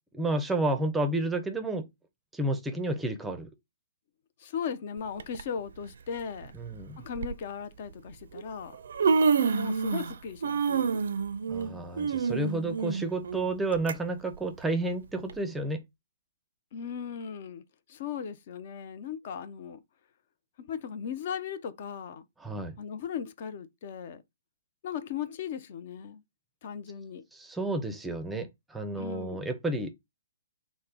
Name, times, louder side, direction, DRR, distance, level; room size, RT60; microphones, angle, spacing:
voice 1, 0.1-1.9 2.3-3.5 6.6-7.0 11.5-15.8 22.4-22.7 27.3-29.9, right 2 dB, 5° right, 0.5 m, -31 dB
voice 2, 4.4-6.5 7.0-8.8 9.4-11.0 16.7-17.6 17.9-19.8 20.6-22.2 22.8-24.2 24.8-26.2 26.6-27.2 29.0-29.4, left 7 dB, 50° left, 0.4 m, -37 dB
Human voice, 5.2-5.4 6.5-6.6 7.2-7.3 8.4-8.5 8.7-10.2 10.4-13.9 14.3-14.4 15.3-15.4, right 5 dB, 65° right, 0.4 m, -27 dB
3.2 x 2.0 x 3.6 m
figure-of-eight pair, 130°, 0 cm